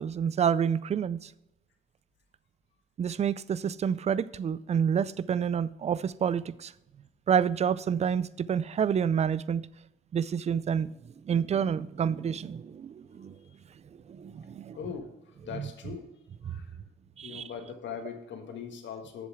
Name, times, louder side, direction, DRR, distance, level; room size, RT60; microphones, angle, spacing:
voice 1, 0.0-1.3 3.0-6.7 7.3-9.7 10.1-10.9 11.2-13.4 14.1-14.8 15.6-15.7 16.5-16.6 17.2-17.4, right 7 dB, 35° right, 0.4 m, -28 dB
voice 2, 14.7-16.1 16.4-16.7 17.2-19.3, left 7 dB, 70° left, 1.6 m, -40 dB
7.6 x 7.0 x 4.8 m
cardioid pair, 90°, 20 cm